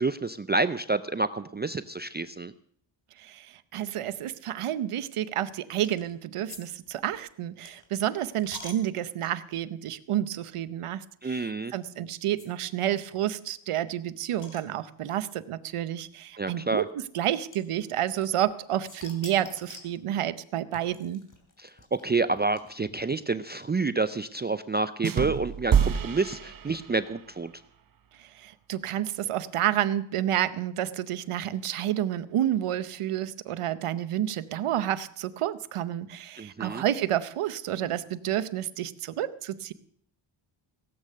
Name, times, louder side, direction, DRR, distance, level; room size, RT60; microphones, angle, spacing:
voice 1, 0.0-2.5 11.2-11.7 16.4-16.8 21.6-27.5 36.4-36.8, right 3 dB, 20° right, 13 dB, 0.4 m, -28 dB
voice 2, 3.2-21.2 28.2-39.7, right 12 dB, 90° right, 15 dB, 0.8 m, -30 dB
sound 1, 5.8-6.1 6.5-6.6 6.9-9.6 10.2-10.3 10.6-10.7 11.7-11.9 12.4-12.5 12.7-12.8 13.0-13.1 13.5-15.2 16.1-16.2 17.5-18.5 18.8-20.0 20.7-23.0, left 2 dB, 40° left, 3.1 m, -47 dB
sound 2, 25.0-27.2, right 8 dB, 45° right, 0.8 m, -27 dB
16.5 x 8.3 x 6.5 m, 0.63 s
cardioid pair, 80°, 50 cm